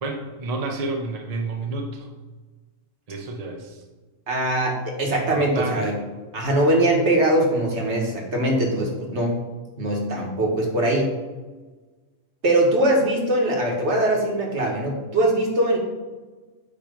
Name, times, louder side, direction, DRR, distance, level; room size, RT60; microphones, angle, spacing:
voice 1, 0.0-2.1 3.1-3.8 5.0-6.0, right 3 dB, 40° right, 2 dB, 0.6 m, -30 dB
voice 2, 4.3-6.0 6.3-9.4 9.8-11.1 12.4-15.8, right 1 dB, 60° right, 0 dB, 1.5 m, -21 dB
8.6 x 3.0 x 5.0 m, 1.3 s
omnidirectional pair, 1.4 m